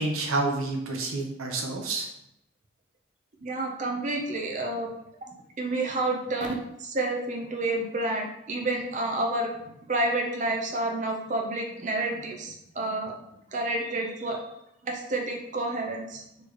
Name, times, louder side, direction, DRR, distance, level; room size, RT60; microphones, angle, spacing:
voice 1, 0.0-2.1, right 2 dB, 90° right, 2 dB, 0.8 m, -29 dB
voice 2, 3.4-4.9 5.6-6.5 6.8-9.5 9.9-13.1 13.5-14.4 14.8-16.2, right 2 dB, 35° right, 1 dB, 0.6 m, -29 dB
4.2 x 3.1 x 2.9 m, 0.79 s
head